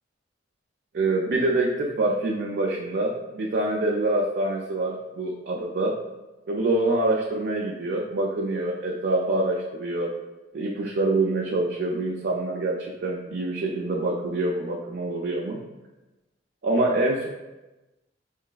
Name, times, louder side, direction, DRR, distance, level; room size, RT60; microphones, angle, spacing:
voice 1, 0.9-5.9 6.5-10.1 10.5-15.6 16.6-17.3, right 2 dB, 60° right, -2 dB, 0.4 m, -25 dB
4.7 x 3.1 x 2.3 m, 1.1 s
head